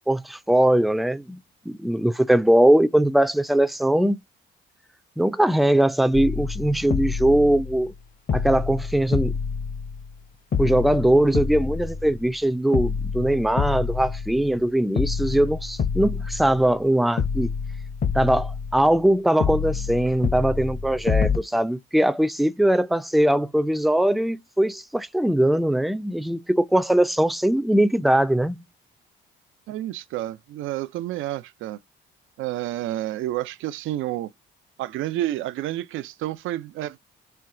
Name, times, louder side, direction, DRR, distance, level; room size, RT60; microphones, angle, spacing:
voice 1, 0.0-1.4 1.7-4.2 5.2-7.9 8.3-9.3 10.6-17.5 18.1-28.7, right 1 dB, ahead, 0.4 m, -21 dB
sound 1, 6.1-8.0 8.3-10.2 10.5-12.4 12.7-14.7 15.0-16.9 17.2-19.1 19.4-21.4, left 6 dB, 45° left, 0.8 m, -27 dB
voice 2, 29.7-31.8 32.4-34.3 34.8-37.0, right 14 dB, 85° right, 0.5 m, -30 dB
4.5 x 2.2 x 3.7 m
cardioid pair, 90°, 20 cm